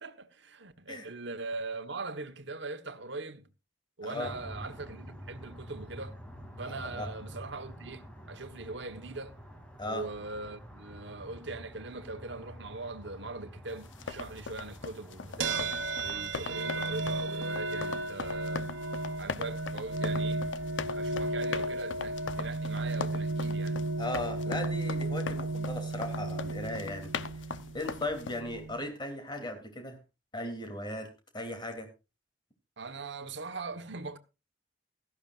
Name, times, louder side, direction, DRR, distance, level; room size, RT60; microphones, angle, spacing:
voice 1, 0.0-3.5 4.0-6.2 6.6-9.4 9.9-15.7 16.0-18.7 19.2-20.4 20.9-23.8 32.8-34.2, right 3 dB, 70° right, 1.3 m, -41 dB
sound 1, 4.2-16.3, equal, 5° left, 2.8 m, -48 dB
voice 2, 6.7-7.1 9.8-10.1 24.0-27.1 27.7-30.0 30.3-31.1 31.3-31.9, left 1 dB, 25° left, 3.1 m, -37 dB
sound 2, 13.8-28.4, left 5 dB, 90° left, 0.8 m, -40 dB
sound 3, 15.4-28.9, right 2 dB, 90° right, 0.9 m, -34 dB
16.0 x 14.0 x 2.5 m
head